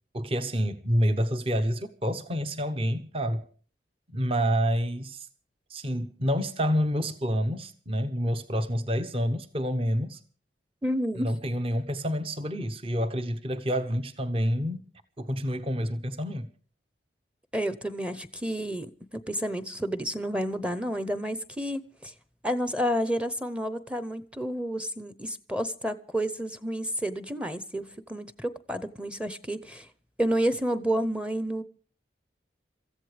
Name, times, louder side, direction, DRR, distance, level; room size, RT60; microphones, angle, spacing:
voice 1, 0.1-3.4 4.1-5.3 5.7-10.2 11.2-14.8 15.2-16.5, equal, 30° right, 0.9 m, -28 dB
voice 2, 10.8-11.3 17.5-22.1 22.4-29.9 30.2-31.6, equal, 5° right, 0.7 m, -30 dB
26.0 x 14.5 x 3.3 m
head